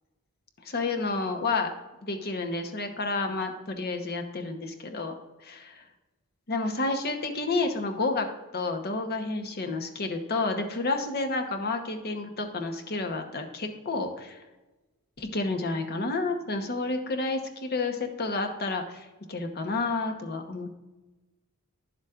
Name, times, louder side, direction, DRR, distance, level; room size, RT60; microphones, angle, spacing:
voice 1, 0.6-1.7 2.0-5.1 5.4-5.8 6.5-8.3 8.5-14.4 15.2-20.7, left 3 dB, 45° left, 5 dB, 1.0 m, -30 dB
10.5 x 7.2 x 2.5 m, 1.1 s
head